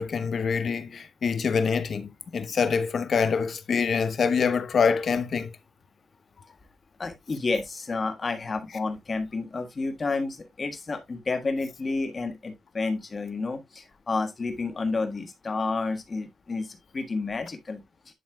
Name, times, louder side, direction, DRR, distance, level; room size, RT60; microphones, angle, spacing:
voice 1, 0.0-5.5, left 6 dB, 50° left, 0.8 m, -25 dB
voice 2, 7.0-16.7 16.9-17.8, left 3 dB, 30° left, 1.5 m, -30 dB
10.5 x 5.5 x 2.3 m
wide cardioid pair, 155°, 0 cm